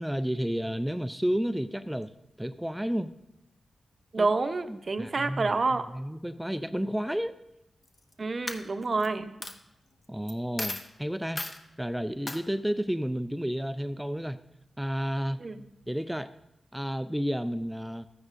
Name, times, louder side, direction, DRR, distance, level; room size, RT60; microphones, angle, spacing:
voice 1, 0.0-2.1 2.4-3.1 4.2-4.3 4.7-7.3 10.1-11.4 11.8-14.4 14.8-15.4 15.9-16.3 16.7-18.1, equal, 5° right, 10 dB, 0.4 m, -31 dB
voice 2, 4.1-5.9 8.2-9.3 15.4-15.6, right 3 dB, 50° right, 10 dB, 0.7 m, -28 dB
Coin (dropping), 7.8-8.1 8.5-9.1 9.4-9.5 10.3-10.4 10.6-10.9 11.4-11.6 12.3-12.4, left 2 dB, 35° left, 0.9 m, -35 dB
13.5 x 9.6 x 2.5 m, 0.87 s
cardioid pair, 55°, 0 cm